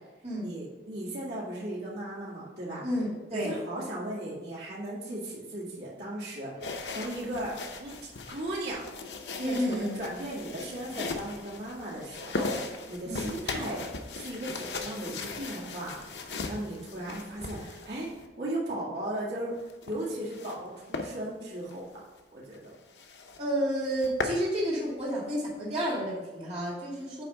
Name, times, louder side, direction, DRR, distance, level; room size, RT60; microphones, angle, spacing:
voice 1, 0.4-2.8 3.3-8.0 8.3-8.8 9.4-13.9 14.1-18.1 18.4-19.5 19.9-22.1 22.3-22.7, right 1 dB, 70° right, -7 dB, 2.1 m, -36 dB
voice 2, 2.8-3.5 9.4-10.0 13.0-13.3 23.4-27.2, equal, 35° right, -7 dB, 2.4 m, -30 dB
sound 1, 6.6-18.3 19.6-20.6 20.9-21.1 21.6-21.8 22.2-22.3 22.5-22.6 23.0-23.4 23.8-24.4, left 3 dB, 80° left, 0.8 m, -38 dB
9.1 x 3.5 x 5.4 m, 1.2 s
head